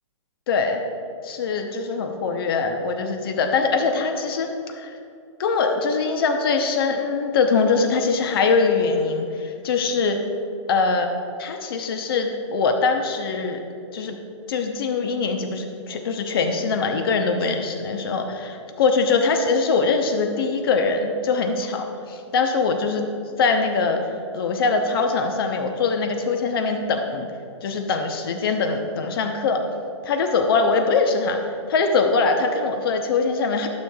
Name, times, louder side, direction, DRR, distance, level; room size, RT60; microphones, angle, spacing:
voice 1, 0.5-0.8 1.2-5.0 5.4-10.2 10.7-11.1 11.4-13.6 13.9-14.2 14.5-23.1 23.4-24.0 24.3-27.3 27.6-29.6 30.0-33.7, left 4 dB, 50° left, 5 dB, 0.8 m, -22 dB
12.0 x 6.5 x 2.3 m, 2.5 s
hypercardioid pair, 145°, 16 cm